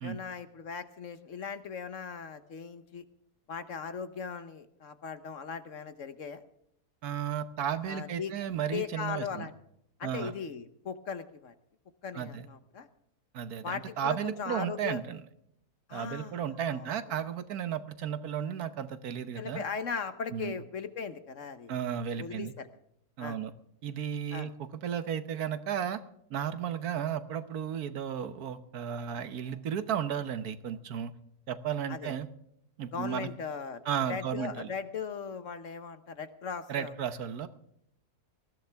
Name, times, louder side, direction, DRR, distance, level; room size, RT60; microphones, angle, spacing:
voice 1, 0.0-3.0 3.5-6.4 7.9-8.3 8.7-9.5 10.0-11.5 12.0-12.9 13.6-15.0 15.9-16.9 19.4-21.7 22.1-22.7 23.2-23.4 24.3-24.5 31.9-32.1 32.9-33.8 34.1-36.9, left 6 dB, 55° left, 11 dB, 1.2 m, -38 dB
voice 2, 7.0-9.5 10.0-10.3 12.1-12.5 13.3-15.2 15.9-19.6 20.3-20.6 21.7-22.5 23.2-23.5 23.8-26.0 26.3-31.1 31.5-32.3 32.8-33.3 33.8-34.7 36.7-37.5, right 8 dB, 70° right, 12 dB, 1.5 m, -34 dB
19.5 x 14.5 x 3.4 m, 0.75 s
omnidirectional pair, 1.7 m